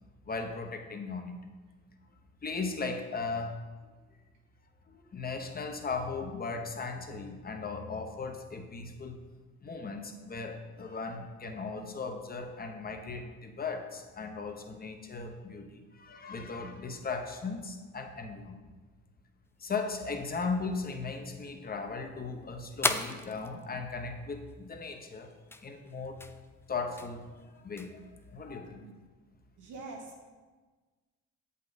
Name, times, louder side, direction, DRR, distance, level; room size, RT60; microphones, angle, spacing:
voice 1, 0.3-1.4 2.4-3.7 4.9-9.2 9.6-18.6 19.6-25.3 25.6-26.2 26.7-28.8, left 4 dB, 30° left, 4 dB, 0.9 m, -37 dB
sound 1, 19.5-28.5, left 2 dB, 10° left, 0.3 m, -40 dB
voice 2, 29.6-30.3, right 3 dB, 80° right, 0 dB, 1.5 m, -45 dB
7.3 x 5.6 x 4.0 m, 1.4 s
cardioid pair, 90°, 30 cm